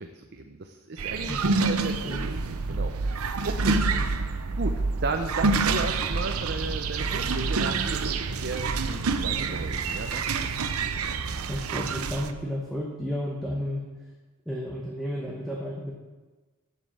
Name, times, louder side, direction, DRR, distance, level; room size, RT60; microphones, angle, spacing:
voice 1, 0.0-3.8 4.6-4.7 5.0-10.5, right 3 dB, 50° right, 5 dB, 0.6 m, -35 dB
sound 1, 1.0-12.3, right 4 dB, 85° right, 0.7 m, -27 dB
voice 2, 1.3-2.3 3.9-4.1 11.5-14.1 14.5-15.9, equal, ahead, -3 dB, 1.0 m, -33 dB
8.2 x 7.5 x 7.3 m, 1.2 s
head